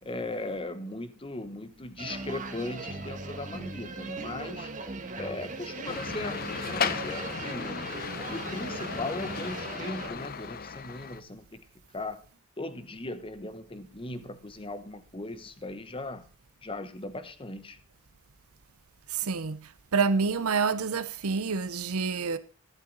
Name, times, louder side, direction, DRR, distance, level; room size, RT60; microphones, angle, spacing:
voice 1, 0.0-4.7 5.1-7.8 8.3-11.7 11.9-12.2 12.6-16.3 16.6-17.8, left 2 dB, 25° left, 1.0 m, -38 dB
sound 1, 2.0-10.1, right 3 dB, 35° right, 1.6 m, -39 dB
sound 2, 5.8-11.2, left 6 dB, 45° left, 0.7 m, -35 dB
voice 2, 19.1-22.4, right 5 dB, 85° right, 0.7 m, -28 dB
11.5 x 11.5 x 3.9 m
head